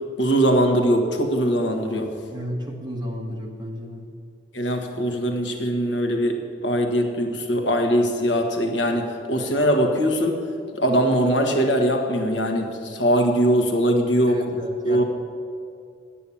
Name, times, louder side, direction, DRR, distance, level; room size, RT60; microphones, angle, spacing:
voice 1, 0.2-2.1 4.5-10.4 10.7-14.4 14.8-15.0, equal, 80° left, 4 dB, 1.5 m, -21 dB
voice 2, 2.3-4.1 14.3-15.0, equal, 25° right, 1 dB, 1.5 m, -33 dB
9.2 x 8.6 x 8.6 m, 2.5 s
head